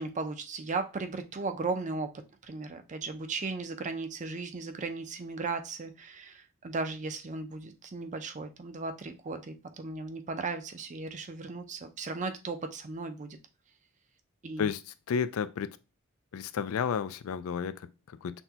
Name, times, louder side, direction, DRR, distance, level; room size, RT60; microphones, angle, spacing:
voice 1, 0.0-2.1 2.4-13.4 14.4-14.7, right 3 dB, 35° right, 0.5 m, -36 dB
voice 2, 14.6-15.8 16.3-18.4, left 7 dB, 75° left, 0.3 m, -32 dB
5.9 x 2.2 x 2.8 m
head